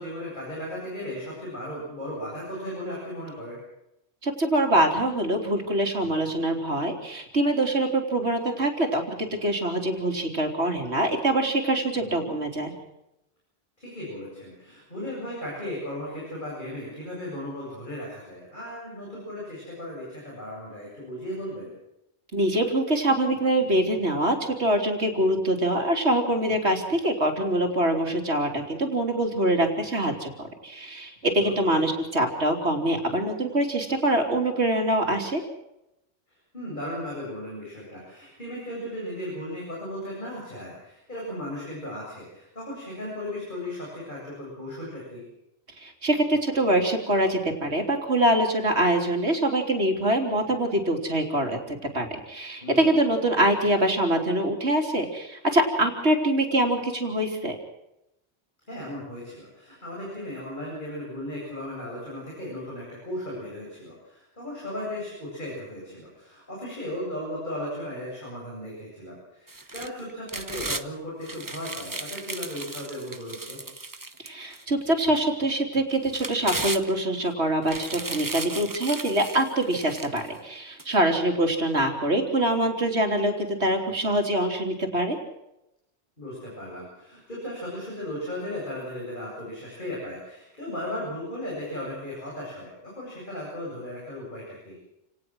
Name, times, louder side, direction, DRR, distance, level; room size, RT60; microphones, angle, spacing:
voice 1, 0.0-3.6 12.0-12.3 13.8-21.7 31.4-31.8 36.5-45.2 52.6-52.9 58.7-73.6 86.2-94.8, left 1 dB, 45° left, -4 dB, 8.3 m, -36 dB
voice 2, 4.2-12.7 22.3-35.4 45.8-57.6 74.2-85.2, right 1 dB, 75° right, 4 dB, 3.7 m, -24 dB
sound 1, 69.5-70.9 71.2-74.6 75.2-75.3 75.9-77.2 77.6-80.3 80.8-80.9, right 2 dB, 20° right, 0.9 m, -35 dB
28.5 x 18.5 x 6.3 m, 0.86 s
omnidirectional pair, 1.1 m